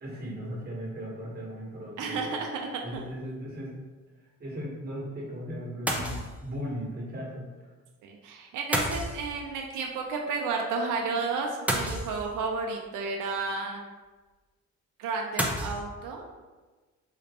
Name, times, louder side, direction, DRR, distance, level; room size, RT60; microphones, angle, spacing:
voice 1, 0.0-2.4 2.8-3.8 4.2-7.7, equal, 30° right, -4 dB, 1.3 m, -37 dB
voice 2, 2.0-2.7 8.0-13.8 15.0-16.2, right 4 dB, 80° right, 1 dB, 0.5 m, -32 dB
sound 1, 2.9-3.2 5.9-6.5 8.7-9.6 11.7-12.6 15.4-15.8, equal, 5° right, 0.5 m, -30 dB
4.0 x 2.5 x 3.3 m, 1.3 s
cardioid pair, 90°, 30 cm